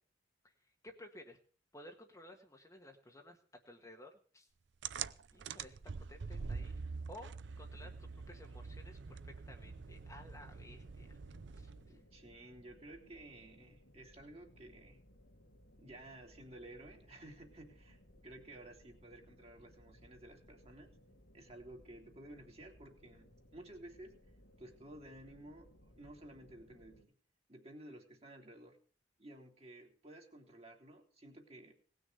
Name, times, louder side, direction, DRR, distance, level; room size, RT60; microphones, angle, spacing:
voice 1, 0.8-1.4 1.7-3.4 3.6-4.5 5.3-5.8 6.1-6.8 7.1-9.2 9.5-11.2 11.5-12.0, left 1 dB, 15° left, 2 dB, 1.5 m, -55 dB
sound 1, 4.8-12.0, right 5 dB, 65° right, 0.6 m, -45 dB
sound 2, 9.7-27.0, equal, 80° left, 2.5 m, -63 dB
voice 2, 11.8-15.0 15.8-20.9 21.3-24.2 24.6-27.1 27.5-28.8 29.2-31.7, right 1 dB, 35° right, 1 dB, 3.0 m, -54 dB
18.5 x 6.6 x 7.9 m, 0.43 s
head